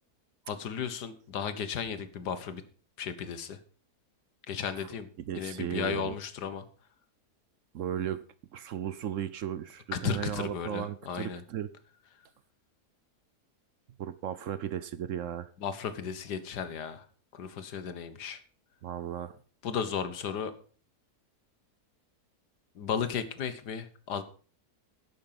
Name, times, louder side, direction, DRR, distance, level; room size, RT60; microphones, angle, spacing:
voice 1, 0.5-2.6 3.0-3.6 4.5-6.7 9.9-11.4 15.6-17.0 17.3-18.4 19.6-20.5 22.8-24.2, left 7 dB, 80° left, 12 dB, 1.8 m, -35 dB
voice 2, 5.3-6.1 7.7-8.2 8.5-11.7 14.0-15.5 18.8-19.4, right 10 dB, 60° right, 15 dB, 0.9 m, -35 dB
11.0 x 8.8 x 5.8 m, 0.41 s
omnidirectional pair, 1.7 m